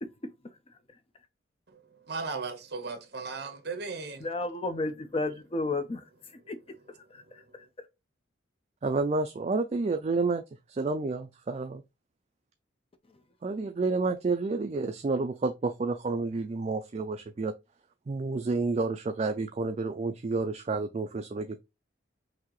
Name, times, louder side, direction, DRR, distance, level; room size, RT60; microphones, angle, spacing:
voice 1, 0.0-1.0 4.2-6.6 6.9-7.9 13.1-13.2, left 2 dB, 30° left, 0.5 m, -35 dB
voice 2, 2.1-4.2, right 4 dB, 60° right, 1.1 m, -36 dB
voice 3, 8.8-10.4 10.7-11.8 13.4-17.5 18.1-21.6, right 3 dB, 35° right, 0.3 m, -30 dB
5.8 x 2.7 x 3.0 m
head